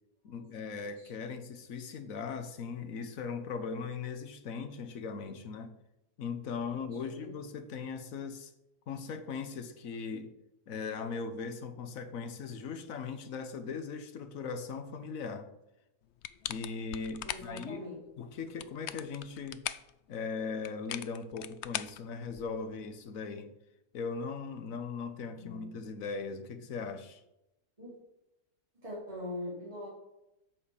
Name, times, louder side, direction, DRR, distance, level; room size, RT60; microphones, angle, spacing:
voice 1, 0.2-5.7 6.2-8.5 8.9-10.3 10.7-15.5 16.5-17.9 18.2-19.6 20.1-23.5 23.9-27.2, left 5 dB, 55° left, 8 dB, 1.4 m, -39 dB
voice 2, 1.0-1.3 7.0-7.3 17.2-18.0 25.3-25.7 27.8-28.0 28.8-29.9, left 1 dB, 20° right, -6 dB, 3.1 m, -42 dB
sound 1, 16.2-17.7 18.4-19.9 20.6-22.7, left 11 dB, 80° left, 0.6 m, -40 dB
8.4 x 6.6 x 7.1 m, 0.89 s
omnidirectional pair, 1.8 m